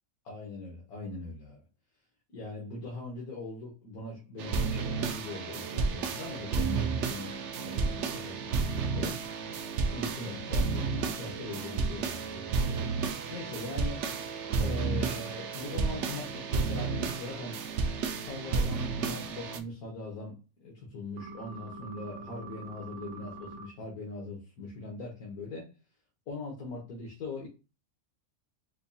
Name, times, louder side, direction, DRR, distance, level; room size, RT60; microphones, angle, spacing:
voice 1, 0.2-1.6 2.3-9.2 9.8-12.8 13.3-14.0 14.6-17.6 18.2-25.7 26.3-27.5, left 2 dB, 75° left, 1.5 m, -41 dB
sound 1, 4.4-19.6, right 4 dB, 65° right, 0.7 m, -32 dB
sound 2, 21.2-23.7, right 2 dB, 90° right, 1.3 m, -44 dB
5.0 x 2.3 x 2.7 m
omnidirectional pair, 1.6 m